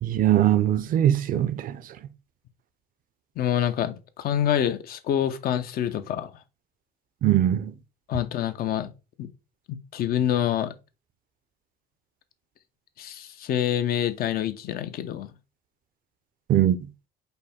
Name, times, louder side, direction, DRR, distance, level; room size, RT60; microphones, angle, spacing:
voice 1, 0.0-1.8 7.2-7.7 16.5-16.8, right 11 dB, 55° right, 0.5 m, -21 dB
voice 2, 3.4-6.3 8.1-8.9 9.2-9.3 9.7-10.7 13.0-15.3, left 10 dB, 60° left, 0.6 m, -26 dB
5.2 x 2.2 x 4.1 m
cardioid pair, 110°, 17 cm